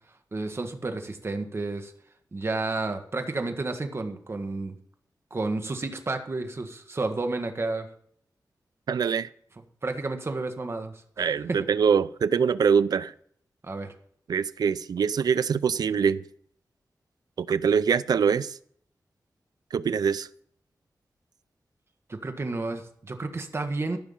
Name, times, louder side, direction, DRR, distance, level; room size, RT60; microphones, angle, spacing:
voice 1, 0.3-1.9 2.3-4.7 5.3-7.9 9.8-11.2 13.6-13.9 22.1-24.0, right 3 dB, 40° right, 5 dB, 1.7 m, -31 dB
voice 2, 8.9-9.3 11.2-13.1 14.3-16.2 17.4-18.6 19.7-20.3, right 6 dB, 85° right, 17 dB, 0.5 m, -24 dB
14.5 x 6.0 x 7.2 m, 0.63 s
wide cardioid pair, 85°, 7 cm